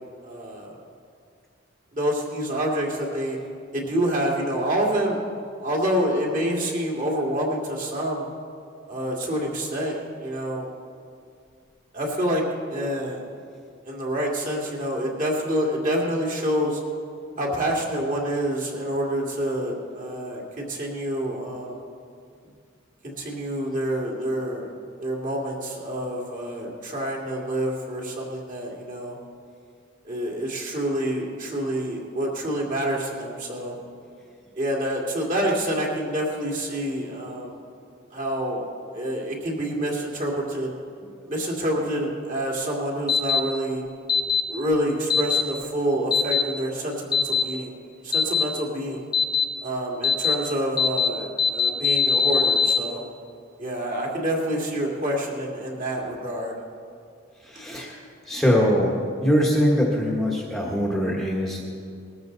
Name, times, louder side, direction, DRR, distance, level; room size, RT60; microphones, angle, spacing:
voice 1, 0.2-0.8 1.9-3.4 3.7-5.2 5.6-8.3 8.9-10.7 11.9-12.4 12.7-13.2 13.8-16.8 17.4-21.8 23.0-24.7 25.0-29.2 30.0-33.8 34.5-37.6 38.1-38.6 38.9-40.7 41.2-43.8 44.5-47.7 48.0-49.1 49.6-53.0 53.6-56.6, equal, 40° right, -2 dB, 2.5 m, -27 dB
sound 1, 43.1-43.4 44.1-44.4 45.1-45.4 46.1-46.4 47.1-47.4 48.1-48.4 49.1-49.4 50.0-50.3 50.8-51.1 51.4-52.8, left 6 dB, 20° left, 0.7 m, -20 dB
voice 2, 57.4-58.0 58.2-58.9 59.2-61.6, equal, ahead, -3 dB, 1.3 m, -22 dB
20.5 x 13.5 x 4.0 m, 2.3 s
head